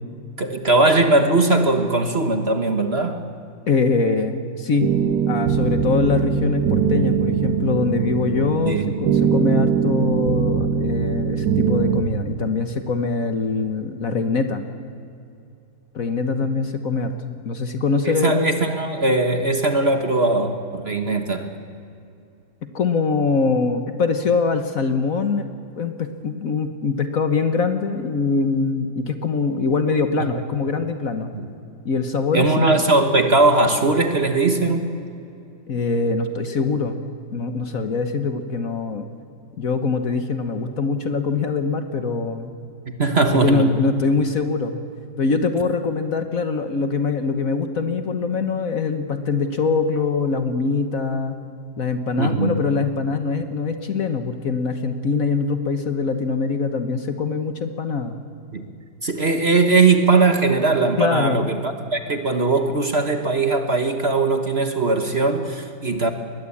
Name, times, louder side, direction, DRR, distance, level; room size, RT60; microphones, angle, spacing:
voice 1, 0.4-3.2 8.6-8.9 18.0-21.5 30.2-30.3 31.3-31.5 32.3-34.9 43.0-43.7 52.2-52.6 58.5-58.6 59.0-66.1, right 3 dB, 35° right, 6 dB, 1.3 m, -19 dB
voice 2, 3.7-4.9 5.3-14.6 15.9-18.6 22.6-25.5 25.8-31.3 31.8-32.9 35.7-37.0 37.3-39.1 39.6-42.5 43.3-44.8 45.2-51.4 51.8-58.2 61.0-61.5, left 4 dB, 50° left, 8 dB, 1.5 m, -23 dB
sound 1, 4.8-12.0, right 7 dB, 70° right, 1.7 m, -21 dB
22.5 x 20.5 x 8.6 m, 2.6 s
omnidirectional pair, 2.0 m